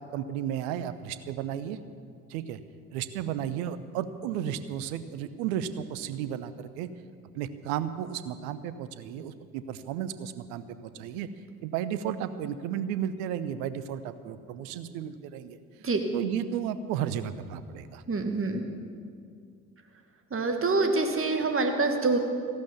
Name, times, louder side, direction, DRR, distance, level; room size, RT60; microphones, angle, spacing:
voice 1, 0.0-1.8 2.3-2.6 2.9-6.9 7.3-11.3 11.6-15.6 16.1-18.0, right 10 dB, 70° right, 13 dB, 0.9 m, -33 dB
voice 2, 18.1-18.6 20.3-22.2, right 3 dB, 30° right, 5 dB, 1.8 m, -26 dB
15.0 x 11.5 x 7.1 m, 2.3 s
figure-of-eight pair, 45°, 46 cm